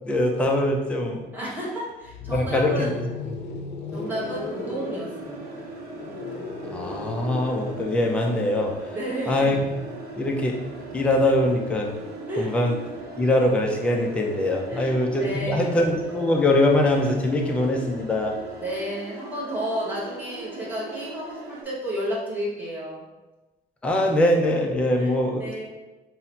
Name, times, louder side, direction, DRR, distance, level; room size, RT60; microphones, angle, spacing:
voice 1, 0.0-1.2 2.3-2.9 6.7-8.7 9.3-9.6 10.2-10.6 10.9-11.9 12.4-12.7 13.2-18.3 23.8-25.5, left 1 dB, 5° left, 1 dB, 0.3 m, -22 dB
voice 2, 1.3-3.0 3.9-5.4 8.9-9.5 12.3-12.6 14.7-15.8 18.6-23.1 25.0-25.7, equal, 10° right, -6 dB, 0.9 m, -32 dB
sound 1, 2.0-14.0 15.2-18.8, left 3 dB, 80° left, 0.6 m, -39 dB
sound 2, 4.0-21.6, right 3 dB, 60° right, 0.6 m, -40 dB
5.6 x 2.0 x 2.7 m, 1.1 s
cardioid pair, 170°, 17 cm